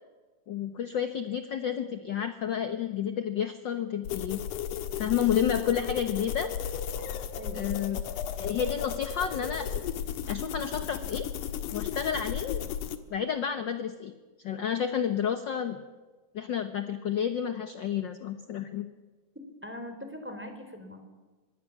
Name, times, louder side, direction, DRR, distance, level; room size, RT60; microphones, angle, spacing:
voice 1, 0.5-4.4 5.0-6.5 7.5-8.0 8.4-9.8 10.3-11.3 11.7-12.6 13.1-14.1 14.4-15.8 16.3-18.9, left 8 dB, 55° left, 8 dB, 1.3 m, -30 dB
sound 1, 4.0-13.0, left 9 dB, 85° left, 2.9 m, -34 dB
voice 2, 7.4-7.7 19.6-21.0, left 1 dB, 5° right, 6 dB, 3.6 m, -41 dB
25.5 x 21.0 x 7.3 m, 1.3 s
omnidirectional pair, 3.5 m